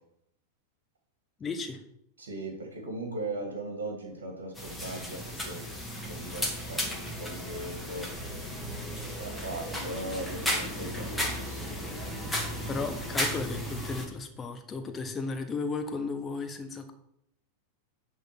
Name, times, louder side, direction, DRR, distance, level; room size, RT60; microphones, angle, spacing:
voice 1, 1.4-1.8 12.7-16.9, left 4 dB, 20° left, 8 dB, 1.2 m, -34 dB
voice 2, 2.2-5.6 6.0-8.1 9.1-12.8, right 2 dB, 60° right, 1 dB, 2.1 m, -39 dB
sound 1, 4.6-14.1, equal, ahead, 1.9 m, -34 dB
10.5 x 3.8 x 6.0 m, 0.73 s
figure-of-eight pair, 90°, 0 cm